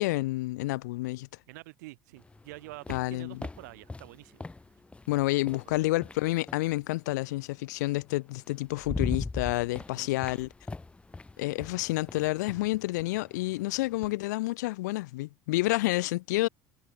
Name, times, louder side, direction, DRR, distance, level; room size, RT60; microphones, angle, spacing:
voice 1, 0.0-1.3 2.9-3.3 5.1-10.5 11.4-16.5, left 20 dB, 90° left, 0.7 m, -29 dB
voice 2, 1.5-4.4 5.6-5.9 9.7-10.1, right 22 dB, 85° right, 3.9 m, -47 dB
sound 1, 2.2-6.7 8.0-8.1 8.5-14.2, left 3 dB, 15° left, 0.5 m, -40 dB
supercardioid pair, 85°, 9 cm